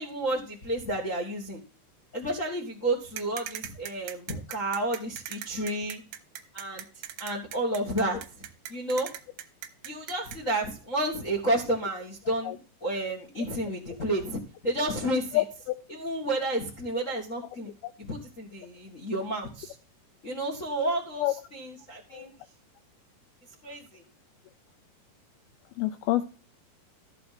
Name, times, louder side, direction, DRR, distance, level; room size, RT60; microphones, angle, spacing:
voice 1, 0.0-1.6 2.1-6.0 6.5-6.8 7.2-9.1 9.8-15.4 15.9-17.7 18.0-19.7 20.2-21.2 21.5-22.3 23.6-24.0, right 1 dB, 40° left, 0 dB, 1.0 m, -31 dB
sound 1, 3.2-10.4, right 11 dB, 80° right, 2.5 m, -40 dB
voice 2, 15.3-15.8 17.8-17.9 21.2-21.3 22.1-22.3 25.8-26.2, left 16 dB, 80° left, 10 dB, 2.3 m, -27 dB
13.5 x 5.3 x 5.9 m, 0.35 s
omnidirectional pair, 4.9 m